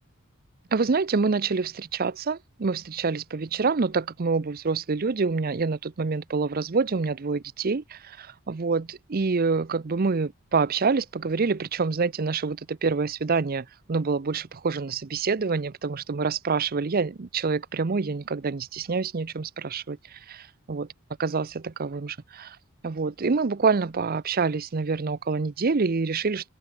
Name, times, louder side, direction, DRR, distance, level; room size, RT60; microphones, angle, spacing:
voice 1, 0.7-20.2 20.7-20.9 21.2-22.6 22.8-26.5, right 4 dB, 40° right, 0.6 m, -26 dB
open air
head